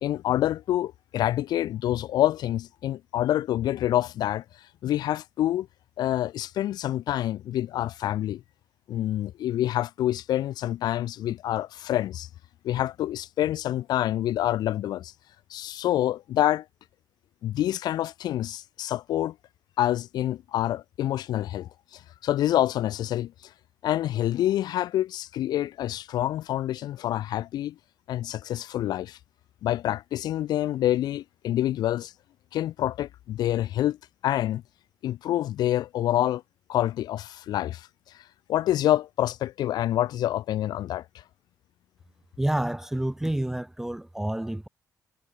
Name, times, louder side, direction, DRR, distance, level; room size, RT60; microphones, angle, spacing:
voice 1, 0.0-4.4 4.8-5.7 6.0-8.4 8.9-12.3 12.6-15.1 15.5-16.6 17.4-19.3 19.8-23.3 23.8-27.7 28.1-29.2 29.6-32.1 32.5-34.0 34.2-34.6 35.0-36.4 36.7-37.9 38.5-41.0, left 13 dB, 80° left, 0.5 m, -27 dB
voice 2, 42.4-44.7, right 1 dB, 5° right, 0.4 m, -28 dB
cardioid pair, 140°, 7 cm